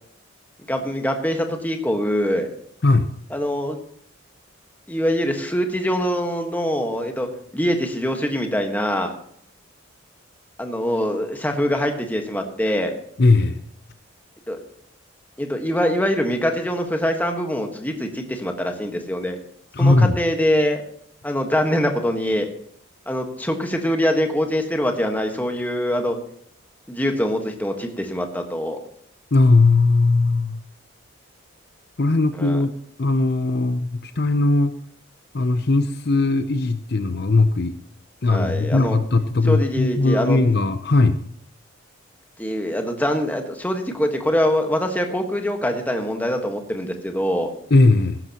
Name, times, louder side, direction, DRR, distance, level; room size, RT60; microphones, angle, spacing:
voice 1, 0.7-2.5 3.3-3.8 4.9-7.3 7.5-9.1 10.6-12.9 14.5-14.6 15.4-19.4 19.8-20.8 21.2-22.5 23.1-26.2 26.9-28.8 32.4-32.6 38.3-39.0 39.5-40.4 42.4-47.5, equal, 10° left, 4 dB, 1.4 m, -23 dB
voice 2, 13.2-13.6 19.7-20.2 29.3-30.6 32.0-32.7 33.0-34.7 35.3-37.8 38.2-41.2 47.7-48.2, left 3 dB, 55° left, 10 dB, 0.7 m, -18 dB
16.0 x 12.0 x 2.9 m, 0.65 s
head